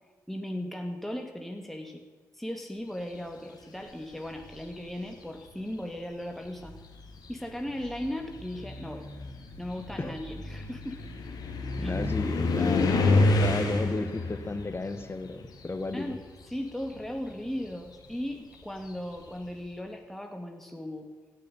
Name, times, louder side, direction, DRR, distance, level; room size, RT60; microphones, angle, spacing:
voice 1, 0.3-2.0 2.3-6.8 7.3-9.0 9.6-11.0 11.8-12.0 15.9-21.1, left 1 dB, 5° left, 3 dB, 2.1 m, -37 dB
sound 1, 4.2-4.8 5.8-5.9 6.5-16.4 16.6-19.3, left 2 dB, 75° left, 2.8 m, -30 dB
voice 2, 11.8-16.2, left 3 dB, 35° left, 9 dB, 1.9 m, -34 dB
16.5 x 6.8 x 9.9 m, 1.4 s
supercardioid pair, 50°, 7 cm